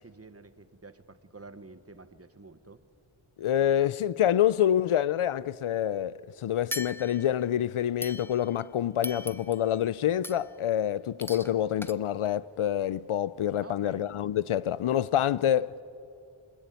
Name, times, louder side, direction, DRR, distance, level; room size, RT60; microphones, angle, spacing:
voice 1, 0.0-2.8 13.6-14.0, right 3 dB, 30° right, 1.1 m, -49 dB
voice 2, 3.4-15.8, left 11 dB, 80° left, 0.6 m, -27 dB
sound 1, 6.7-7.4 8.0-8.6 9.0-9.7 10.2-10.6 11.2-11.5 11.8-11.9, left 1 dB, 5° left, 0.7 m, -39 dB
25.0 x 20.5 x 9.2 m
wide cardioid pair, 95°, 49 cm